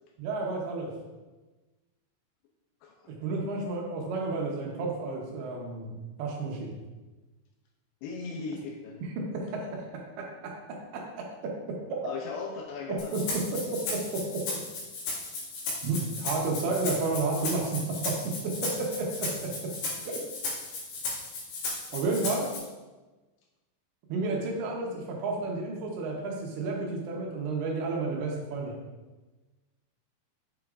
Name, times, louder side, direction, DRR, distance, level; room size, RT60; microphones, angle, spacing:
voice 1, 0.2-0.9 3.1-6.7 9.2-12.0 12.9-14.7 15.8-19.7 20.0-20.2 21.9-22.5 24.1-28.8, right 3 dB, 80° right, 0 dB, 3.2 m, -32 dB
voice 2, 8.0-9.0 12.0-13.1, left 4 dB, 85° left, 1 dB, 2.5 m, -37 dB
Rattle (instrument), 13.0-22.6, left 3 dB, 65° left, 4.1 m, -35 dB
8.3 x 6.4 x 2.5 m, 1.2 s
omnidirectional pair, 5.2 m